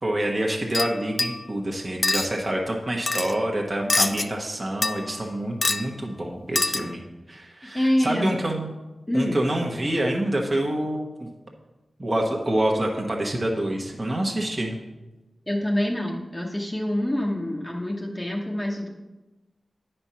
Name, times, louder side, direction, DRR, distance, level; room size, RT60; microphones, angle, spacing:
voice 1, 0.0-7.0 7.3-8.7 9.1-11.3 12.0-14.8, right 1 dB, 30° right, 0 dB, 1.1 m, -27 dB
sound 1, 0.7-1.5 2.0-2.3 3.1-3.3 3.9-4.3 4.8-5.3 5.6-5.9 6.6-6.9, left 3 dB, 45° left, 0.4 m, -25 dB
voice 2, 7.7-8.3 9.1-9.4 15.5-18.9, left 1 dB, 20° left, -1 dB, 1.0 m, -26 dB
9.6 x 4.4 x 5.6 m, 1.1 s
wide cardioid pair, 70°, 0 cm